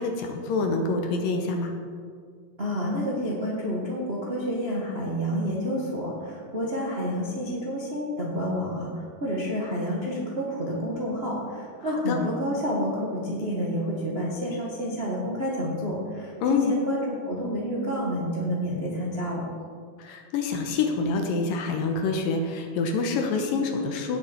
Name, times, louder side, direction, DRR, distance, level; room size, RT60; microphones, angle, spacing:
voice 1, 0.0-1.7 12.1-12.2 16.4-16.7 20.0-24.2, left 4 dB, 75° left, 3 dB, 2.5 m, -26 dB
voice 2, 2.6-19.4, equal, 60° right, -4 dB, 0.6 m, -29 dB
17.0 x 7.2 x 4.5 m, 2.1 s
omnidirectional pair, 4.3 m